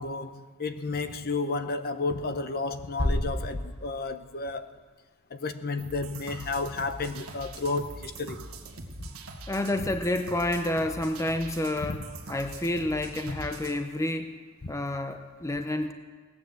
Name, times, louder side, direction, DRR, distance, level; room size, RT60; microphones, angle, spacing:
voice 1, 0.0-4.7 5.3-8.4 14.6-14.7, left 3 dB, 45° left, 0.8 m, -32 dB
sound 1, 3.0-4.8, left 1 dB, 65° left, 4.8 m, -31 dB
sound 2, 5.8-13.8, right 2 dB, 75° right, 1.5 m, -43 dB
voice 2, 9.5-14.3 14.7-15.9, left 1 dB, 15° left, 0.6 m, -29 dB
18.0 x 9.7 x 7.7 m
head